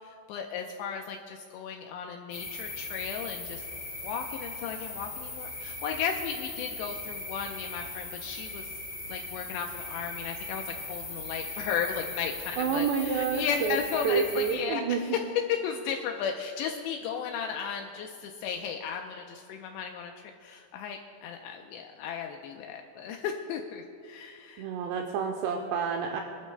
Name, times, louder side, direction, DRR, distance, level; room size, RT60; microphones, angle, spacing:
voice 1, 0.0-3.6 4.0-8.7 9.1-15.2 15.5-24.7, left 7 dB, 85° left, 3 dB, 2.5 m, -35 dB
sound 1, 2.3-14.5, left 3 dB, 35° left, 2.9 m, -39 dB
voice 2, 12.6-13.8 14.0-15.0 24.6-26.2, right 6 dB, 80° right, 2 dB, 2.5 m, -29 dB
25.0 x 12.0 x 2.2 m, 2.5 s
omnidirectional pair, 5.7 m